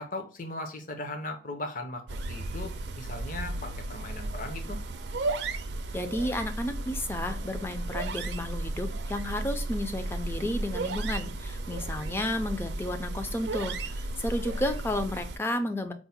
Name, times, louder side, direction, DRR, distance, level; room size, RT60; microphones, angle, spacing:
voice 1, 0.0-2.0 2.3-4.8, left 2 dB, 45° left, 4 dB, 0.6 m, -38 dB
sound 1, 2.1-15.4, right 2 dB, 60° right, 0.4 m, -34 dB
voice 2, 5.9-15.9, left 1 dB, 10° left, 7 dB, 0.3 m, -32 dB
4.5 x 2.1 x 4.0 m, 0.38 s
head